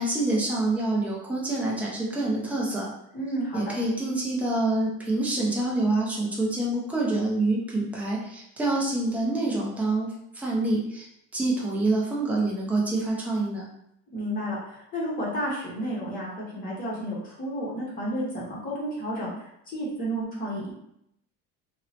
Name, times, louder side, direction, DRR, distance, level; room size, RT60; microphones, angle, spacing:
voice 1, 0.0-2.9 3.5-11.1 11.3-13.6, right 2 dB, 5° right, -4 dB, 0.3 m, -26 dB
voice 2, 3.1-3.7 14.1-20.7, equal, 30° left, -5 dB, 0.7 m, -31 dB
2.9 x 2.0 x 2.7 m, 0.78 s
cardioid pair, 170°, 31 cm